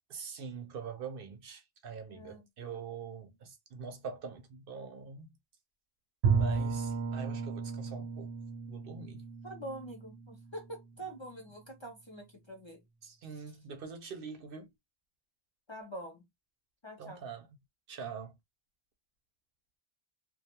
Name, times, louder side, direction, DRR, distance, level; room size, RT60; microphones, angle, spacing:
voice 1, 0.1-5.3 6.3-8.3 8.7-9.2 13.0-14.7 17.0-17.5 17.9-18.4, right 5 dB, 65° right, 0.7 m, -44 dB
voice 2, 2.1-2.4 9.4-12.8 13.3-13.4 15.7-16.2 16.8-17.3, right 1 dB, 35° left, 0.5 m, -45 dB
Bowed string instrument, 6.2-11.0, right 5 dB, 90° right, 0.8 m, -33 dB
2.3 x 2.2 x 2.7 m
omnidirectional pair, 1.1 m